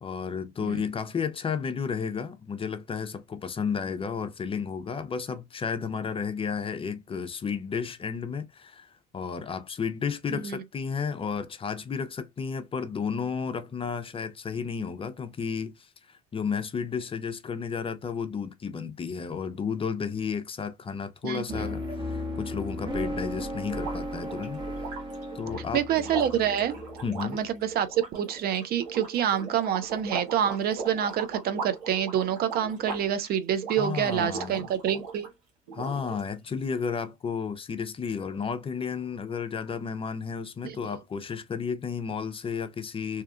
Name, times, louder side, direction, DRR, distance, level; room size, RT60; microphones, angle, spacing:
voice 1, 0.0-24.6 25.3-25.8 27.0-27.4 33.8-34.7 35.7-43.2, left 6 dB, 30° left, 0.5 m, -32 dB
voice 2, 21.2-21.7 25.7-26.7 27.2-35.3 40.6-40.8, right 9 dB, 50° right, 0.5 m, -27 dB
sound 1, 21.5-27.6, equal, 25° right, 1.0 m, -35 dB
sound 2, 23.7-35.3 35.7-36.5, right 4 dB, 85° right, 1.2 m, -39 dB
2.8 x 2.3 x 2.3 m
hypercardioid pair, 70°, 20 cm